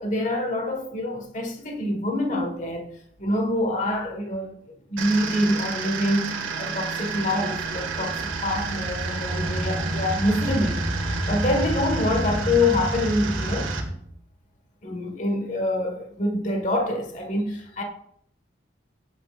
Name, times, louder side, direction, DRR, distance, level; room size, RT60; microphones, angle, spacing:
voice 1, 0.0-2.9 3.2-4.6 4.9-10.8 11.2-13.7 14.8-17.8, left 1 dB, 40° left, 1.7 m, -26 dB
sound 1, 5.0-13.8, right 5 dB, 90° right, 2.0 m, -32 dB
sound 2, 7.2-13.9, right 1 dB, 5° right, 2.0 m, -30 dB
16.5 x 8.9 x 2.5 m
head